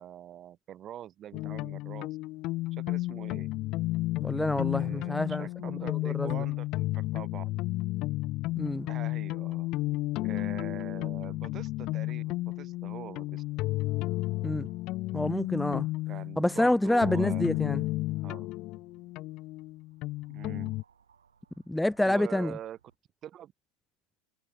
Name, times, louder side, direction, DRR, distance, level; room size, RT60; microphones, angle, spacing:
voice 1, 0.0-2.1 2.7-3.5 4.7-7.6 8.9-9.7 10.2-13.4 16.1-17.6 18.2-18.5 20.3-20.8 22.0-22.8 23.2-23.5, right 11 dB, 35° right, 1.2 m, -44 dB
sound 1, 1.3-20.8, left 19 dB, 45° left, 0.7 m, -32 dB
voice 2, 4.2-6.4 8.6-8.9 14.4-14.7 15.1-15.9 16.4-17.8 21.7-22.5, left 1 dB, 5° left, 0.4 m, -28 dB
sound 2, 4.9-23.0, right 7 dB, 80° right, 6.3 m, -69 dB
figure-of-eight pair, 80°, 0 cm